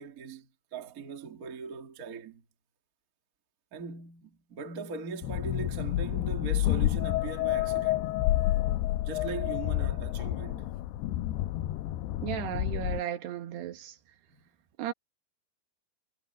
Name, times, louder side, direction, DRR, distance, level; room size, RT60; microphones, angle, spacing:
voice 1, 0.0-2.4 3.7-8.2 9.0-10.7 14.3-14.4, right 5 dB, 30° right, 1.7 m, -40 dB
sound 1, 5.2-13.0, left 15 dB, 85° left, 2.8 m, -29 dB
voice 2, 12.2-13.9 14.8-14.9, right 11 dB, 80° right, 3.7 m, -35 dB
omnidirectional pair, 4.8 m